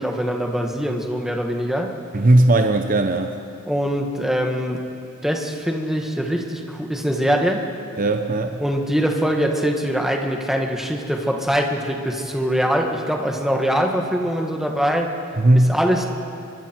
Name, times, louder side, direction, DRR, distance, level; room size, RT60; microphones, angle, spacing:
voice 1, 0.0-1.9 3.7-4.8 5.2-7.6 8.6-15.1 15.5-16.0, equal, ahead, 2 dB, 1.6 m, -23 dB
voice 2, 2.1-3.3 8.0-8.6 15.4-15.7, right 1 dB, 40° right, 5 dB, 0.8 m, -17 dB
25.0 x 23.5 x 4.6 m, 2.5 s
head